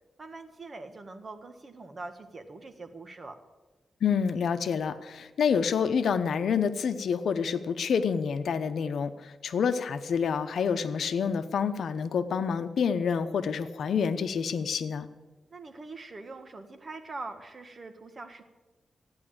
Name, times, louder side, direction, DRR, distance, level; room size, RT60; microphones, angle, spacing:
voice 1, 0.2-3.4 15.5-18.4, right 3 dB, 35° right, 7 dB, 1.6 m, -43 dB
voice 2, 4.0-15.1, left 6 dB, 80° left, 11 dB, 0.9 m, -28 dB
15.0 x 9.7 x 8.8 m, 1.2 s
wide cardioid pair, 120°, 0 cm